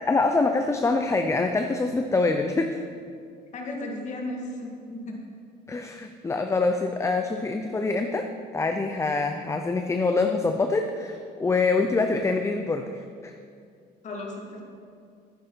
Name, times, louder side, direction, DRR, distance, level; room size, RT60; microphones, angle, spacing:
voice 1, 0.0-2.8 5.7-8.3 8.5-12.9 13.2-13.3, left 3 dB, 15° left, 5 dB, 0.5 m, -25 dB
voice 2, 3.5-5.2 14.0-14.6, left 1 dB, 45° left, -1 dB, 1.9 m, -35 dB
10.5 x 9.2 x 4.5 m, 2.3 s
cardioid pair, 110°, 17 cm